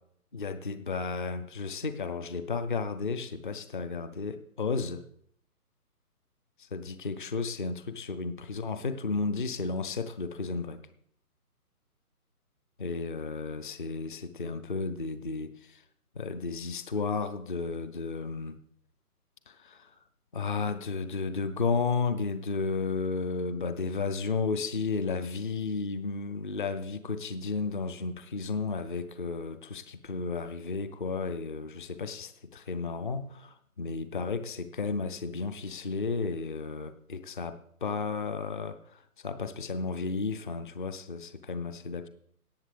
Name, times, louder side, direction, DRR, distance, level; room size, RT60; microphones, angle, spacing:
voice 1, 0.3-5.0 6.7-10.8 12.8-15.5 16.2-18.5 19.6-19.8 20.3-38.8 39.2-42.1, left 4 dB, 35° left, 12 dB, 0.5 m, -33 dB
18.0 x 7.4 x 3.4 m, 0.68 s
figure-of-eight pair, 145°, 46 cm